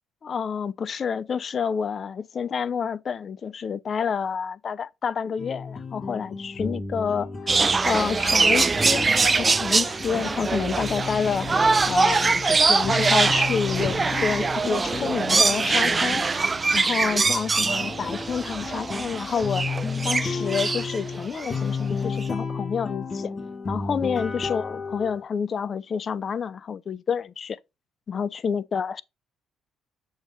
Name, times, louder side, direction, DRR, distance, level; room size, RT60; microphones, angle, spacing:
voice 1, 0.2-7.5 7.8-11.5 11.9-16.2 16.7-19.6 20.0-23.3 23.7-27.6 28.1-29.0, left 6 dB, 45° left, 0.4 m, -28 dB
sound 1, 5.4-25.2, left 4 dB, 30° left, 1.3 m, -33 dB
sound 2, 7.5-21.6 22.2-22.3, right 4 dB, 30° right, 0.4 m, -23 dB
6.5 x 2.9 x 5.3 m
supercardioid pair, 70°, 0 cm